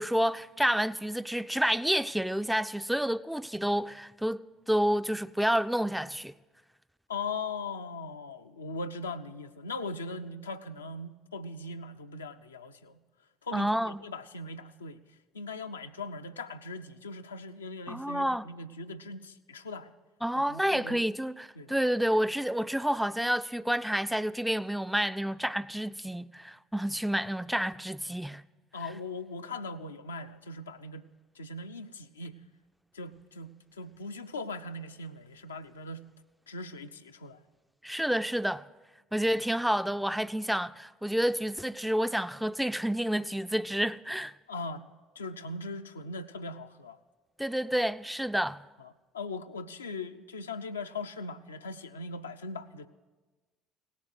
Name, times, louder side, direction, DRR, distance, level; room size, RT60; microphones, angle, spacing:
voice 1, 0.0-6.3 13.5-14.0 17.9-18.5 20.2-28.4 37.8-38.6 39.1-44.3 47.4-48.6, equal, 5° right, 0.4 m, -29 dB
voice 2, 7.1-13.0 13.4-15.0 15.3-19.9 20.3-21.0 21.6-21.8 28.7-31.0 31.4-32.4 32.9-36.0 36.5-37.4 44.5-44.8 45.2-47.0 48.8-52.9, left 3 dB, 85° left, 0.5 m, -40 dB
17.5 x 7.3 x 8.1 m
figure-of-eight pair, 55°, 0 cm